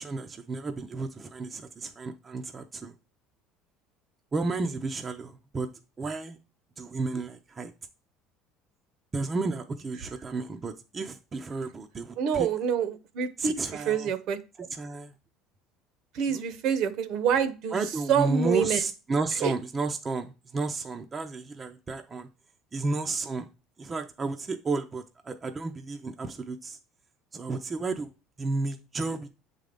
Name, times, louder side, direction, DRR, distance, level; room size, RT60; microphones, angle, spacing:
voice 1, 0.0-2.9 4.3-5.7 6.0-6.4 6.8-7.7 9.1-12.5 13.4-14.1 14.8-15.1 16.3-16.4 17.7-22.3 22.7-23.5 23.8-26.8 27.3-28.1 28.4-29.3, right 3 dB, 20° right, 0.5 m, -32 dB
voice 2, 12.2-14.4 16.1-18.8 19.4-19.5, right 7 dB, 55° right, 0.8 m, -27 dB
7.3 x 3.8 x 3.4 m
cardioid pair, 155°, 0 cm